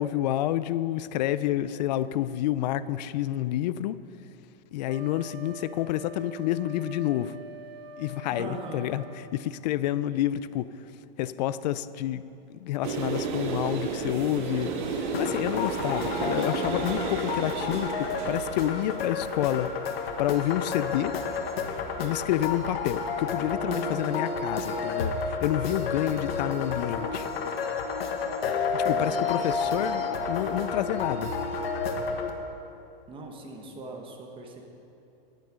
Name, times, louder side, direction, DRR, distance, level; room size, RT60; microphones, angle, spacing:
voice 1, 0.0-4.0 4.7-7.4 8.0-10.7 11.2-12.2 12.5-19.7 20.2-21.2 22.0-27.3 28.7-31.3, left 13 dB, 45° left, 15 dB, 0.4 m, -29 dB
Wind instrument woodwind instrument, 4.9-9.3, right 1 dB, 90° right, 0.7 m, -45 dB
voice 2, 8.3-8.8 23.6-24.0 28.9-29.9 33.1-34.6, right 3 dB, 15° right, 1 dB, 1.3 m, -40 dB
sound 1, 12.8-22.2, right 4 dB, 55° right, 1.5 m, -34 dB
sound 2, 15.1-32.3, left 5 dB, 80° left, 1.4 m, -31 dB
10.5 x 9.2 x 6.3 m, 2.7 s
hypercardioid pair, 140°, 30 cm